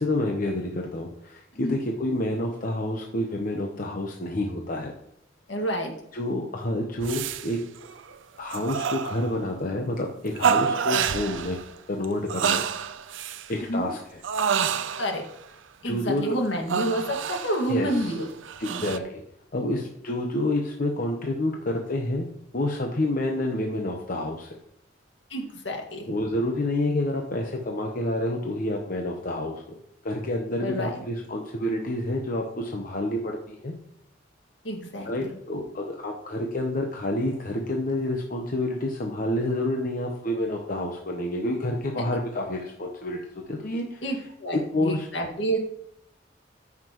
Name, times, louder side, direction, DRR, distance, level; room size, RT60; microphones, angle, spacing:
voice 1, 0.0-4.9 6.1-7.6 8.4-11.6 11.9-12.6 13.5-14.2 15.8-16.3 17.7-18.1 18.6-19.2 19.5-22.3 22.5-24.5 26.1-29.7 30.0-33.7 35.0-43.2 43.5-44.0 44.5-45.1, left 1 dB, 50° left, 1 dB, 0.9 m, -28 dB
voice 2, 5.5-5.9 13.7-13.9 15.0-15.2 15.8-18.3 18.7-18.8 25.3-26.1 30.6-31.0 34.6-35.3 44.0-45.6, right 1 dB, 75° left, 2 dB, 1.9 m, -29 dB
sound 1, 7.0-7.5 7.8-8.2 8.5-9.5 10.4-11.7 12.0-13.5 14.2-15.3 16.7-19.0, right 7 dB, 90° right, 0.5 m, -28 dB
14.0 x 6.0 x 3.0 m, 0.77 s
head